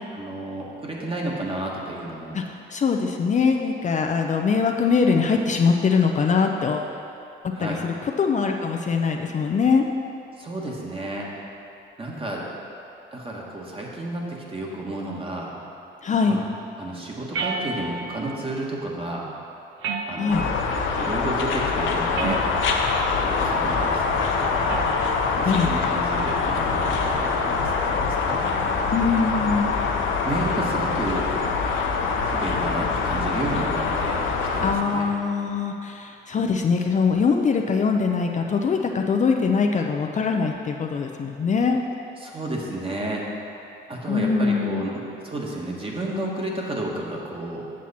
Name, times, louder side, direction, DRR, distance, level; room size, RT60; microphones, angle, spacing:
voice 1, 0.1-2.4 7.5-7.9 10.4-11.3 12.0-12.4 13.1-15.5 16.2-16.4 16.8-19.3 20.1-20.6 21.0-22.5 23.2-24.9 25.4-28.4 30.0-31.3 32.2-34.2 34.5-35.1 42.2-43.2 43.9-47.7, right 2 dB, 25° right, -3 dB, 1.5 m, -31 dB
voice 2, 2.7-6.9 7.6-9.8 16.0-16.4 20.2-20.4 25.5-25.7 28.9-29.7 34.6-41.8 44.1-44.9, left 5 dB, 40° left, 2 dB, 0.5 m, -22 dB
sound 1, 17.3-18.2 19.8-20.7 22.1-22.8 24.7-25.1, right 4 dB, 85° right, 0.7 m, -31 dB
sound 2, 20.3-34.7, left 4 dB, 80° left, 0.8 m, -24 dB
7.6 x 7.2 x 4.2 m, 2.8 s
cardioid pair, 90°, 20 cm